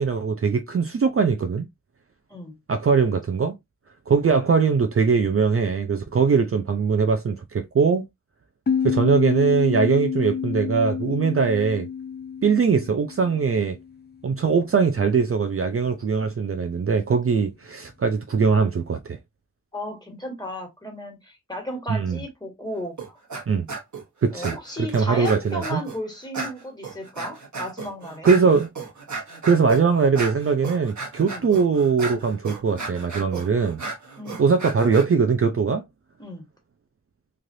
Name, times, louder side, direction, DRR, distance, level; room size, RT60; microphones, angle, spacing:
voice 1, 0.0-1.7 2.7-3.6 4.1-8.1 8.8-11.9 12.4-13.8 14.2-19.2 21.9-22.2 23.5-23.7 24.2-25.8 28.2-28.7 29.4-33.8 34.4-35.8, right 5 dB, 45° right, 0.5 m, -21 dB
sound 1, 8.7-14.0, left 7 dB, 35° left, 0.4 m, -28 dB
voice 2, 19.7-23.2 24.3-28.3 31.3-31.5 34.2-34.4 36.2-36.4, equal, 15° left, 1.6 m, -34 dB
sound 2, 23.0-23.4 23.7-24.0 24.4-26.0 26.3-35.1, right 4 dB, 65° right, 1.2 m, -34 dB
3.3 x 2.4 x 2.6 m
cardioid pair, 50°, 32 cm